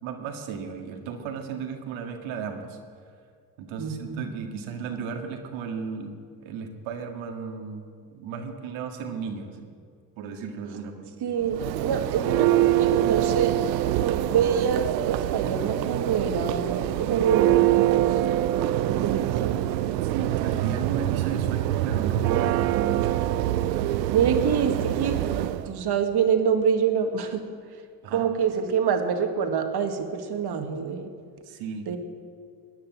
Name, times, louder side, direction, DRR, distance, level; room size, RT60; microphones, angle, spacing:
voice 1, 0.0-2.8 3.6-9.7 10.2-11.1 20.1-23.2 28.0-28.3 31.5-31.9, right 6 dB, 70° right, 4 dB, 2.1 m, -35 dB
voice 2, 3.8-4.2 11.2-13.6 14.0-18.2 18.9-19.7 24.1-27.5 28.1-31.1 31.9-32.0, right 7 dB, 50° right, 6 dB, 2.0 m, -26 dB
Church bell, 11.4-25.7, right 14 dB, 90° right, 0.7 m, -24 dB
18.5 x 10.0 x 7.4 m, 2.1 s
hypercardioid pair, 65°, 49 cm